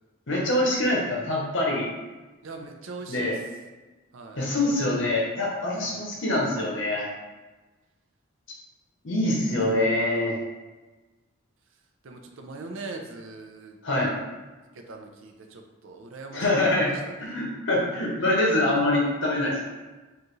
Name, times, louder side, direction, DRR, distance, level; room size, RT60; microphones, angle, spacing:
voice 1, 0.3-1.9 3.1-3.4 4.4-7.1 9.0-10.4 13.8-14.1 16.3-17.0 17.2-19.7, left 1 dB, 60° left, -3 dB, 0.8 m, -24 dB
voice 2, 2.4-3.4 4.1-4.4 5.8-6.1 9.6-9.8 10.3-10.4 12.0-13.8 14.7-17.3, right 3 dB, 65° right, 3 dB, 0.5 m, -41 dB
4.8 x 2.5 x 3.1 m, 1.2 s
head